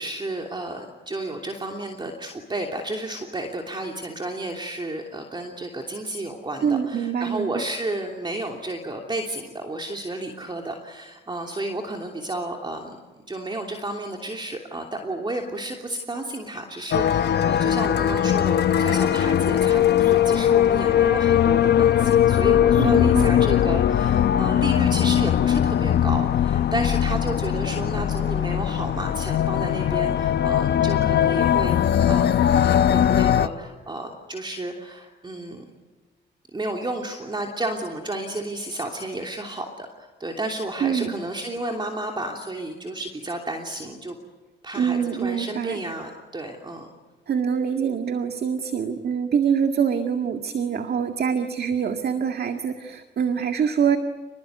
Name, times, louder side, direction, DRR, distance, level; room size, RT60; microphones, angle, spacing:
voice 1, 0.0-13.0 13.3-32.4 32.9-35.6 36.5-44.2 44.6-46.9, right 2 dB, 25° right, 2 dB, 3.0 m, -32 dB
voice 2, 6.6-7.6 22.8-23.3 40.8-41.1 44.8-45.8 47.3-54.0, right 7 dB, 55° right, 6 dB, 1.9 m, -24 dB
sound 1, 16.9-33.5, left 10 dB, 55° left, 0.9 m, -20 dB
29.0 x 20.5 x 9.5 m, 1.3 s
cardioid pair, 90°, 20 cm